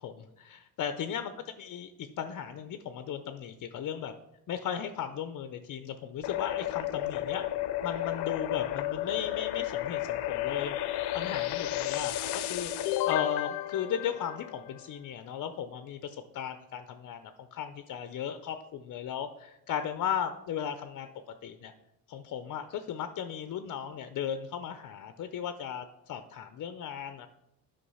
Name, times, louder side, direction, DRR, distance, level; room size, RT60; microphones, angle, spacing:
voice 1, 0.0-1.3 1.6-4.1 4.5-7.4 7.8-21.1 21.4-21.7 22.1-27.3, left 8 dB, 50° left, 9 dB, 0.6 m, -36 dB
sound 1, 6.2-14.9, left 13 dB, 85° left, 0.7 m, -32 dB
8.5 x 5.6 x 5.5 m, 0.85 s
cardioid pair, 110°, 39 cm